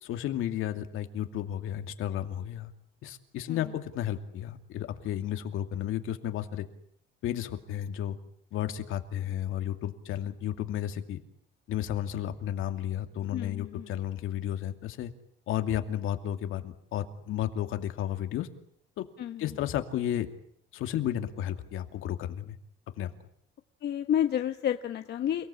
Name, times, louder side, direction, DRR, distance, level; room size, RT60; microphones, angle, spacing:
voice 1, 0.0-2.7 3.0-6.7 7.2-8.2 8.5-11.2 11.7-15.1 15.5-18.5 19.0-19.1 19.4-20.3 20.7-22.6 23.0-23.1, left 11 dB, 75° left, 7 dB, 2.6 m, -33 dB
voice 2, 13.3-13.9 19.2-19.4 23.8-25.5, left 10 dB, 55° left, 7 dB, 1.2 m, -30 dB
30.0 x 18.0 x 8.5 m, 0.70 s
cardioid pair, 145°, 21 cm